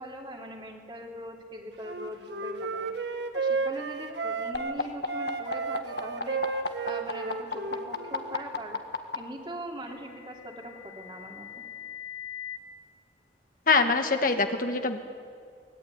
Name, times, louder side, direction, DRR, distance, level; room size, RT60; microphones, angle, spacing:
voice 1, 0.0-8.8 9.1-11.6, right 1 dB, 25° right, 1 dB, 3.0 m, -41 dB
Wind instrument woodwind instrument, 1.8-4.8 5.1-8.4, right 4 dB, 80° right, 1.6 m, -33 dB
sound 1, 4.5-9.2 10.3-12.6, left 4 dB, 75° left, 1.8 m, -34 dB
voice 2, 13.7-15.0, left 4 dB, 50° left, 6 dB, 1.5 m, -24 dB
23.5 x 20.5 x 9.7 m, 2.2 s
head